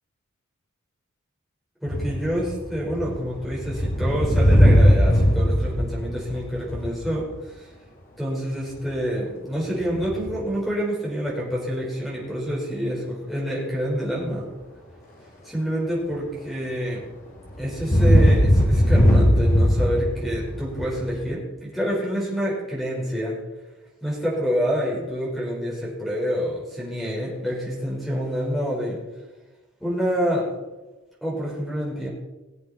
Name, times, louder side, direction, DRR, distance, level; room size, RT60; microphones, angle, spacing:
voice 1, 1.8-7.7 8.2-14.5 15.4-17.0 17.6-23.3 24.0-29.0 29.8-30.5 31.2-32.1, equal, ahead, -5 dB, 4.6 m, -27 dB
sound 1, 1.9-7.2 9.9-10.4 17.6-21.2, equal, 40° left, 2.8 m, -19 dB
20.0 x 7.8 x 4.3 m, 1.1 s
head